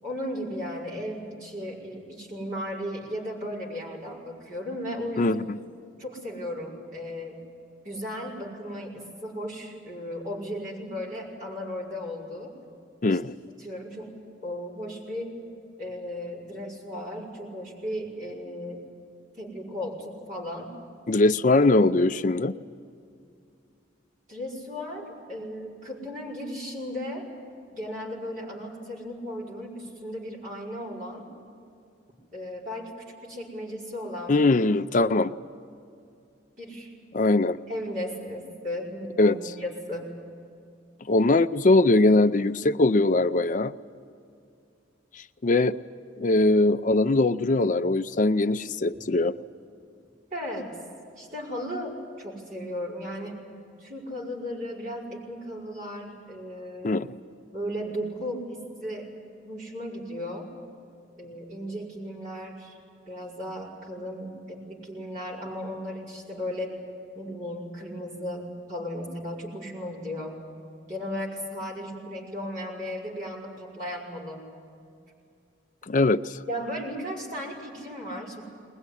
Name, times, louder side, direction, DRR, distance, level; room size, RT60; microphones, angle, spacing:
voice 1, 0.0-5.4 6.0-7.4 7.8-12.5 13.1-13.2 13.6-14.2 14.4-15.4 15.8-18.9 19.4-20.7 24.3-27.3 27.7-31.3 32.3-33.0 33.2-34.3 36.6-36.9 37.7-40.1 50.3-50.7 51.2-53.5 53.8-56.9 57.5-59.1 59.4-60.5 61.2-62.8 63.1-66.8 67.1-70.5 70.9-74.5 76.5-78.4, equal, 45° right, -4 dB, 5.3 m, -35 dB
voice 2, 13.0-13.3 21.1-22.5 34.3-35.3 37.1-37.6 39.2-39.3 41.1-43.7 45.1-45.7 46.2-49.3 56.8-57.2 75.9-76.4, left 2 dB, 40° left, 10 dB, 0.5 m, -21 dB
21.5 x 20.5 x 9.9 m, 2.4 s
head